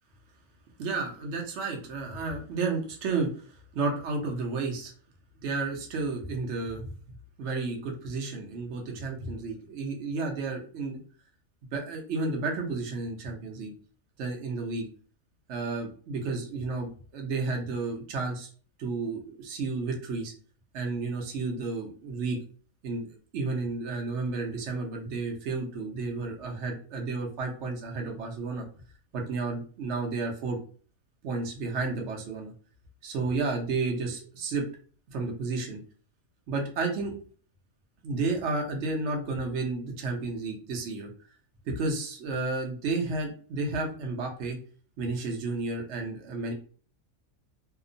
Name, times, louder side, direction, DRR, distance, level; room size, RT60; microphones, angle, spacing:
voice 1, 0.8-4.9 5.4-6.9 7.4-11.0 11.7-13.7 14.2-14.9 15.5-18.5 18.8-20.3 20.7-22.4 22.8-28.7 29.1-30.6 31.2-32.5 33.0-34.7 35.1-35.8 36.5-37.1 38.0-41.1 41.7-44.6 45.0-46.5, right 3 dB, 60° right, 1 dB, 0.9 m, -32 dB
2.8 x 2.0 x 2.5 m, 0.42 s
omnidirectional pair, 1.4 m